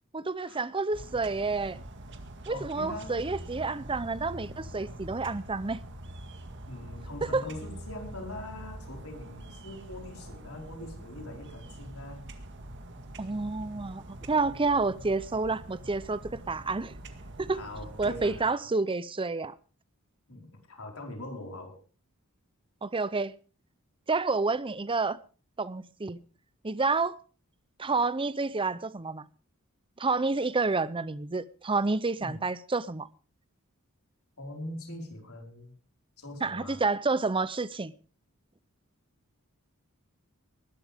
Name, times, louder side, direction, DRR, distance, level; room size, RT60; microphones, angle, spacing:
voice 1, 0.1-1.8 2.5-5.8 7.2-7.4 13.2-17.0 17.4-17.6 18.0-19.5 22.8-23.3 24.1-25.2 25.6-26.2 26.6-27.2 27.8-29.3 30.0-33.1 36.4-37.9, right 3 dB, 25° right, 0.7 m, -29 dB
sound 1, 0.9-18.4, right 1 dB, 55° right, 1.9 m, -44 dB
voice 2, 2.5-3.3 6.7-12.3 17.5-18.7 20.3-21.8 32.2-32.5 34.4-35.7 36.2-36.8, left 1 dB, 75° left, 5.0 m, -42 dB
20.5 x 12.5 x 3.6 m
head